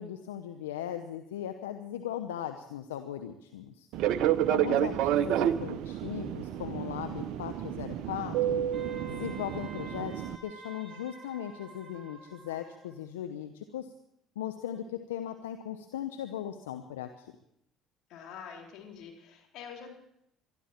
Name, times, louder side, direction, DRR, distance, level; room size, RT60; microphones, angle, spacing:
voice 1, 0.0-3.9 4.5-8.6 9.1-13.9 14.4-17.3, left 10 dB, 85° left, 7 dB, 0.8 m, -38 dB
Fixed-wing aircraft airplane, 3.9-10.4, right 11 dB, 65° right, 0.7 m, -30 dB
Wind instrument woodwind instrument, 8.7-12.9, right 2 dB, 25° right, 6.1 m, -49 dB
voice 2, 18.1-19.9, left 7 dB, 65° left, 1 dB, 3.8 m, -46 dB
22.5 x 13.0 x 4.5 m, 0.75 s
hypercardioid pair, 60°, 0 cm